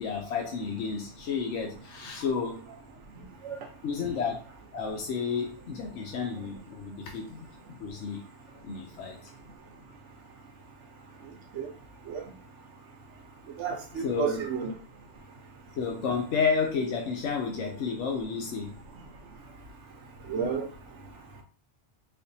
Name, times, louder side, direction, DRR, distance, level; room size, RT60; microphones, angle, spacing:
voice 1, 0.0-2.6 3.8-4.4 4.7-8.2 8.6-9.3 14.0-14.5 15.8-18.7, left 5 dB, 85° left, 1 dB, 1.0 m, -31 dB
voice 2, 13.6-14.7 20.3-20.7, right 6 dB, 90° right, 4 dB, 1.1 m, -31 dB
4.3 x 2.5 x 2.7 m, 0.38 s
omnidirectional pair, 1.2 m